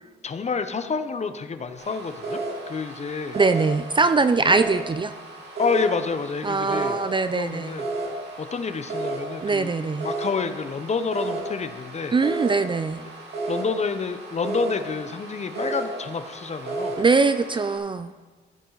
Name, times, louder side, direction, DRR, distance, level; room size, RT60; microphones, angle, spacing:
voice 1, 0.2-2.4 2.7-3.4 5.6-7.0 7.3-7.9 8.4-9.7 10.0-12.1 13.5-16.9, left 5 dB, 35° left, 9 dB, 0.9 m, -28 dB
sound 1, 1.8-17.8, right 2 dB, 55° right, 3.1 m, -33 dB
voice 2, 3.4-5.1 6.4-7.8 9.4-10.1 12.1-13.0 17.0-18.1, right 4 dB, 25° right, 11 dB, 0.5 m, -22 dB
15.0 x 9.1 x 4.0 m, 1.3 s
cardioid pair, 90°, 20 cm